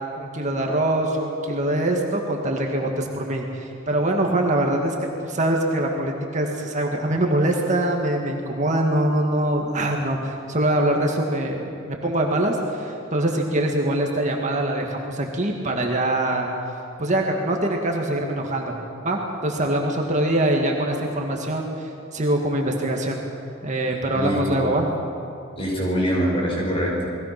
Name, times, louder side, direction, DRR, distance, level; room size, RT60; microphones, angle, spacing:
voice 1, 0.2-5.0 5.2-16.5 17.0-18.8 19.0-23.2 23.6-24.9, right 1 dB, 35° right, 1 dB, 2.0 m, -23 dB
voice 2, 24.1-24.7 25.6-27.1, equal, 25° left, -2 dB, 5.8 m, -24 dB
29.5 x 21.0 x 6.0 m, 2.7 s
head